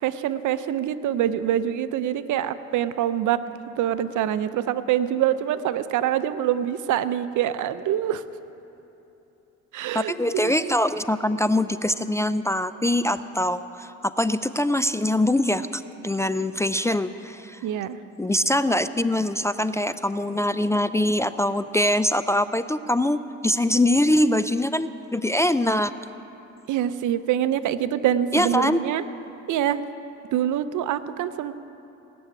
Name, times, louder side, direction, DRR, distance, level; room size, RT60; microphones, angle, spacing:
voice 1, 0.0-3.4 3.8-8.2 9.7-10.8 17.6-18.0 26.7-29.0 29.5-29.8 30.3-31.6, right 11 dB, 75° right, 13 dB, 0.7 m, -25 dB
voice 2, 9.9-17.6 18.2-25.9 28.3-28.8, left 1 dB, 10° left, 13 dB, 0.3 m, -23 dB
18.5 x 7.1 x 9.6 m, 2.9 s
cardioid pair, 90°, 30 cm